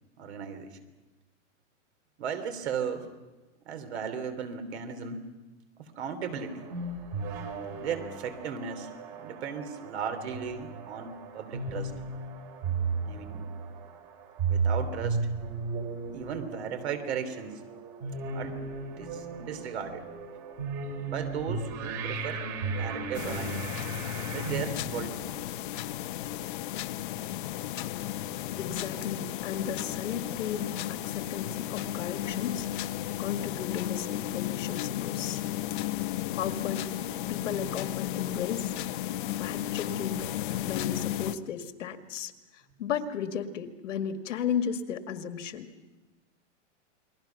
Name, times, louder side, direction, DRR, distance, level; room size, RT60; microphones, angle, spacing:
voice 1, 0.2-0.8 2.2-3.1 3.6-5.3 5.9-6.6 7.8-8.9 9.2-11.9 13.0-13.5 14.5-15.2 16.1-17.6 18.3-18.6 19.0-20.1 21.1-23.7 24.3-25.4, right 7 dB, 60° right, 9 dB, 3.3 m, -36 dB
sound 1, 6.2-24.6, right 4 dB, 35° right, 3.0 m, -35 dB
sound 2, 23.1-41.4, left 13 dB, 45° left, 0.9 m, -34 dB
voice 2, 28.6-32.7 33.2-35.4 36.4-36.9 37.3-39.0 39.3-40.3 40.6-42.3 42.8-45.7, left 8 dB, 80° left, 7 dB, 2.1 m, -35 dB
29.5 x 21.5 x 5.9 m, 1.1 s
supercardioid pair, 170°, 37 cm